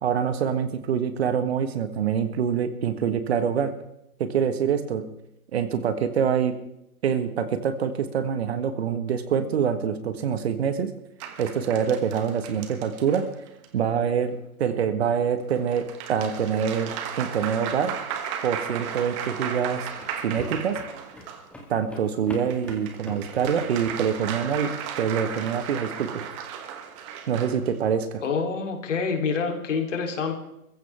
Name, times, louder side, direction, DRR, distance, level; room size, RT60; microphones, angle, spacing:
voice 1, 0.0-3.7 4.2-5.1 5.5-6.5 7.0-10.9 11.4-13.3 13.7-17.9 18.4-19.9 20.2-20.8 21.7-26.2 27.3-28.2, right 7 dB, 45° right, 10 dB, 1.5 m, -25 dB
sound 1, 11.2-13.7 15.5-21.5 22.3-27.7, right 8 dB, 20° right, 1.2 m, -35 dB
sound 2, 18.8-24.4, left 1 dB, 5° left, 1.9 m, -43 dB
voice 2, 28.2-30.3, left 5 dB, 55° left, 4 dB, 3.4 m, -27 dB
22.5 x 15.0 x 3.5 m, 0.82 s
hypercardioid pair, 155°, 43 cm